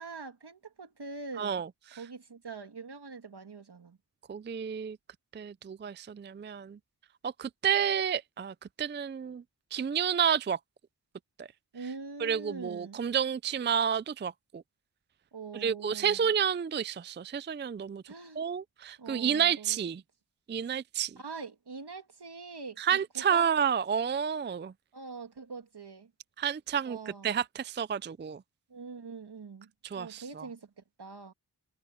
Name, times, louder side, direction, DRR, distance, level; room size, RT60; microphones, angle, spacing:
voice 1, 0.0-1.6 2.0-4.0 11.7-13.0 15.3-16.3 18.1-18.4 19.0-19.8 21.2-23.5 24.9-26.1 26.8-27.3 28.7-29.7 30.0-31.3, right 4 dB, 75° right, 2.6 m, -44 dB
voice 2, 1.4-1.7 4.3-5.0 5.3-6.8 7.2-9.4 9.7-10.6 11.4-11.5 12.2-14.6 15.5-18.0 18.4-20.0 20.5-21.2 22.8-24.7 26.4-27.0 27.2-28.4 29.9-30.5, right 8 dB, 30° right, 0.4 m, -30 dB
wide cardioid pair, 80°, 41 cm